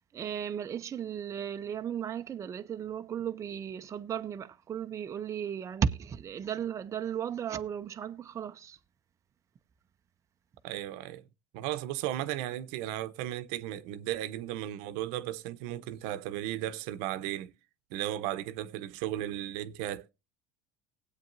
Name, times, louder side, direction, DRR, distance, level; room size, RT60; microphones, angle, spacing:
voice 1, 0.1-8.8, right 8 dB, 25° right, 0.5 m, -35 dB
voice 2, 10.6-11.2 11.5-17.5 17.9-20.1, right 13 dB, 70° right, 0.8 m, -35 dB
19.0 x 8.2 x 2.6 m
supercardioid pair, 120°, 12 cm